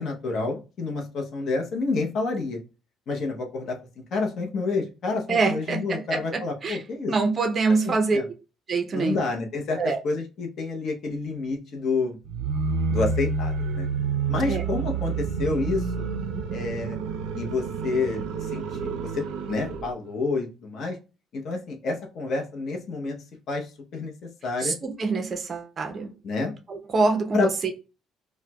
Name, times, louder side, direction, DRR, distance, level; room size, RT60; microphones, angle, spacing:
voice 1, 0.0-2.6 3.1-7.1 7.8-8.3 8.9-12.2 12.9-13.9 14.3-16.1 16.5-17.0 17.3-18.6 19.0-21.0 21.3-23.2 23.5-24.1 24.4-24.7 26.2-26.5 27.3-27.5, left 3 dB, 40° left, 0.7 m, -29 dB
voice 2, 5.3-6.2 6.6-6.8 7.1-8.2 8.7-9.2 9.8-10.0 14.5-14.6 24.6-26.1 26.7-27.5, right 4 dB, 25° right, 0.5 m, -25 dB
sound 1, 12.2-19.9, right 5 dB, 75° right, 0.4 m, -29 dB
4.3 x 2.1 x 2.2 m
cardioid pair, 170°, 0 cm